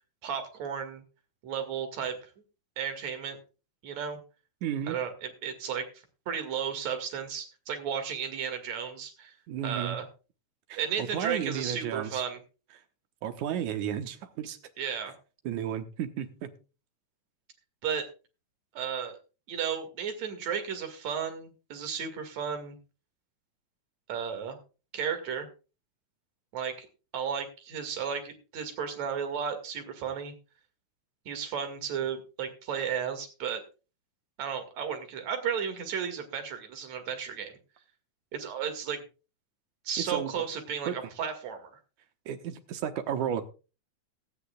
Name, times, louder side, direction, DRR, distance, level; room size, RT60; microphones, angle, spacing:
voice 1, 0.2-1.0 1.4-2.2 2.8-3.4 3.8-4.2 4.9-5.9 6.3-9.3 9.6-10.1 10.8-12.4 14.8-15.1 17.8-18.1 18.7-19.2 19.5-22.8 24.1-24.6 24.9-25.5 26.5-26.9 27.1-30.3 31.3-33.6 34.4-37.6 38.3-39.0 39.8-41.8, right 7 dB, 65° right, 3.3 m, -34 dB
voice 2, 4.6-5.0 9.5-10.0 10.7-12.2 13.2-14.6 15.5-16.5 40.0-40.3 40.9-41.1 42.3-43.5, right 9 dB, 80° right, 2.6 m, -33 dB
17.0 x 13.0 x 2.4 m
omnidirectional pair, 3.4 m